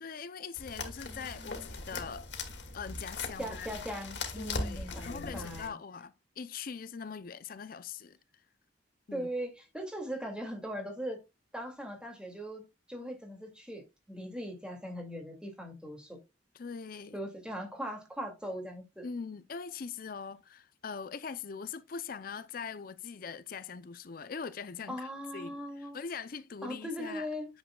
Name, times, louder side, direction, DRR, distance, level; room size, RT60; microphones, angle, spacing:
voice 1, 0.0-2.3 2.7-3.7 4.4-8.2 9.1-9.3 16.5-17.2 19.0-27.3, left 6 dB, 50° left, 0.5 m, -42 dB
sound 1, 0.5-5.7, left 3 dB, 65° left, 2.2 m, -40 dB
voice 2, 1.1-1.6 3.4-5.7 9.1-11.2 11.5-12.6 12.9-16.2 17.1-19.1 24.9-26.0 26.6-27.5, equal, 5° right, 2.2 m, -40 dB
9.8 x 7.4 x 2.3 m
head